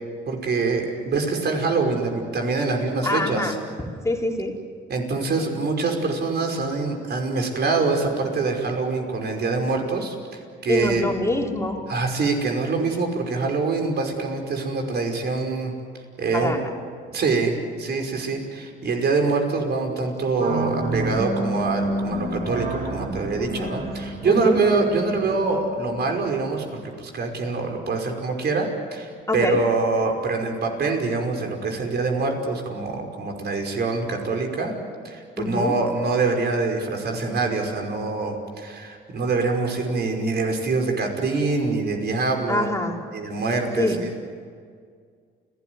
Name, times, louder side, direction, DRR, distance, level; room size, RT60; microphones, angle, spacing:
voice 1, 0.3-3.5 4.9-11.1 11.9-15.7 16.2-16.5 17.1-34.8 35.0-42.7 43.1-44.1, right 3 dB, 55° right, 3 dB, 5.5 m, -25 dB
voice 2, 3.0-3.5 4.0-4.5 10.7-11.8 16.3-16.6 23.4-23.7 24.2-24.6 29.3-29.6 35.4-35.8 42.5-43.0 43.8-44.0, left 2 dB, 15° left, 1 dB, 3.8 m, -25 dB
sound 1, 20.4-26.7, right 1 dB, 35° right, 6.4 m, -30 dB
29.5 x 18.0 x 9.7 m, 2.1 s
cardioid pair, 90°, 20 cm